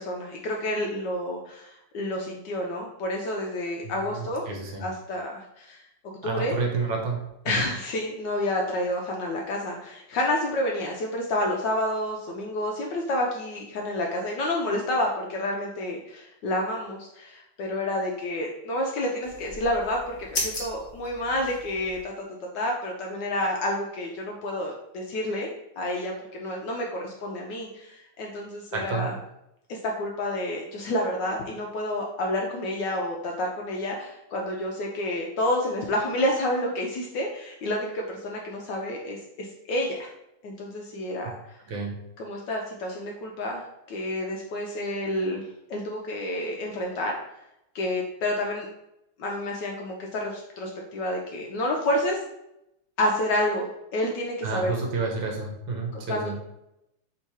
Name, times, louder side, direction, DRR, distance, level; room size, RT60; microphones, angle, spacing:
voice 1, 0.0-4.4 4.8-5.8 6.2-6.6 7.5-22.2 22.5-25.5 25.8-29.1 29.7-40.1 40.4-41.6 42.2-47.2 47.7-48.7 49.2-52.2 53.0-53.6 53.9-54.7 55.9-56.4, left 1 dB, 75° left, 0 dB, 1.0 m, -29 dB
voice 2, 3.8-4.8 6.2-7.2 7.4-7.6 28.7-29.1 41.7-41.9 54.4-56.4, right 4 dB, 70° right, 1 dB, 1.5 m, -30 dB
sound 1, 19.2-22.0, left 2 dB, 35° left, 0.9 m, -36 dB
3.6 x 2.8 x 4.5 m, 0.86 s
omnidirectional pair, 2.3 m